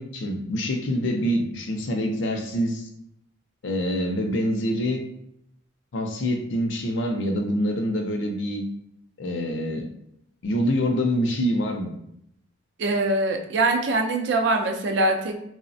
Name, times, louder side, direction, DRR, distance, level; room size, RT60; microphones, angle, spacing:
voice 1, 0.0-2.9 3.6-5.0 5.9-8.6 9.2-9.9 10.4-11.9, equal, 70° left, 3 dB, 0.5 m, -25 dB
voice 2, 12.8-15.5, right 2 dB, 60° right, 4 dB, 0.4 m, -23 dB
3.2 x 2.0 x 2.6 m, 0.77 s
head